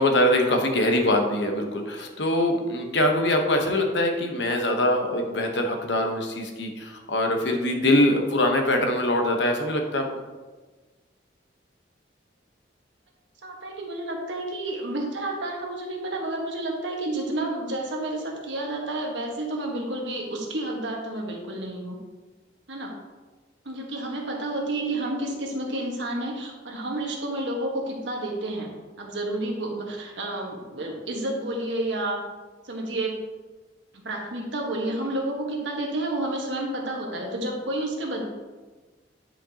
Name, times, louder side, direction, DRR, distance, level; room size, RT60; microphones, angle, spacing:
voice 1, 0.0-10.0, left 1 dB, 75° left, 3 dB, 1.0 m, -23 dB
voice 2, 13.4-22.0 22.7-23.0 23.6-28.7 29.0-32.2 32.7-33.2 33.9-38.3, right 1 dB, 85° right, 0 dB, 1.5 m, -30 dB
9.9 x 5.1 x 2.9 m, 1.3 s
head